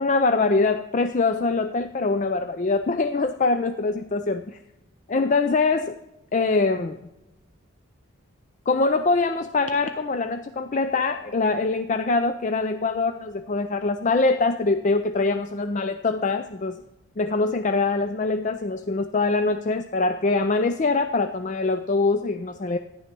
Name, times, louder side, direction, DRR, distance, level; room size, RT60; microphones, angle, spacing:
voice 1, 0.0-4.6 5.1-6.0 6.3-7.0 8.7-16.8 17.2-22.8, left 3 dB, 35° left, 8 dB, 0.4 m, -23 dB
14.0 x 10.5 x 6.0 m, 0.95 s
head